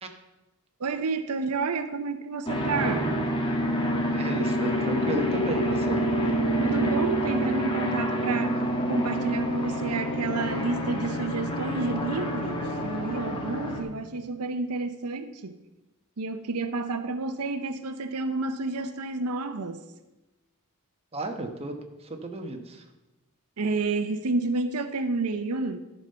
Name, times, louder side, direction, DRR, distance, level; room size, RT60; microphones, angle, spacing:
voice 1, 0.8-3.3 6.6-15.6 16.2-19.8 23.6-25.8, right 3 dB, 90° right, 10 dB, 0.7 m, -30 dB
sound 1, 2.5-13.8, equal, 25° left, 1.4 m, -27 dB
voice 2, 4.1-6.0 21.1-21.7 22.0-22.8, right 2 dB, 25° right, 3 dB, 1.1 m, -33 dB
13.0 x 5.6 x 5.6 m, 1.0 s
head